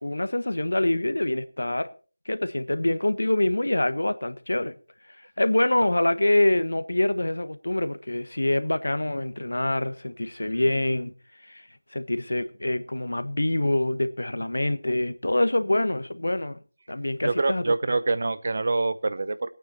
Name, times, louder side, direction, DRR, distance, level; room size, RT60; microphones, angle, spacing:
voice 1, 0.0-1.9 2.2-4.7 5.4-11.1 11.4-16.6 16.9-17.6, left 1 dB, 70° left, 1.3 m, -25 dB
voice 2, 17.2-19.5, right 3 dB, 40° right, 0.8 m, -26 dB
20.0 x 9.2 x 4.3 m
figure-of-eight pair, 175°, 0 cm